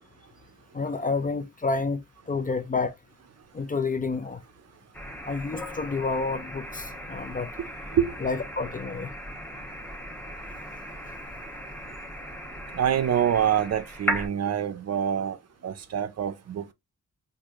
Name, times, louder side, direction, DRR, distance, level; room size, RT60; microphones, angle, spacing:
voice 1, 0.7-2.0 2.3-3.0 3.5-4.4 5.3-7.5 8.2-9.1, left 4 dB, 25° left, 0.4 m, -29 dB
sound 1, 4.9-14.3, equal, 5° left, 0.9 m, -37 dB
voice 2, 7.6-8.1 12.7-15.4 15.6-16.7, right 9 dB, 50° right, 0.5 m, -26 dB
4.5 x 2.6 x 2.4 m
cardioid pair, 90°, 32 cm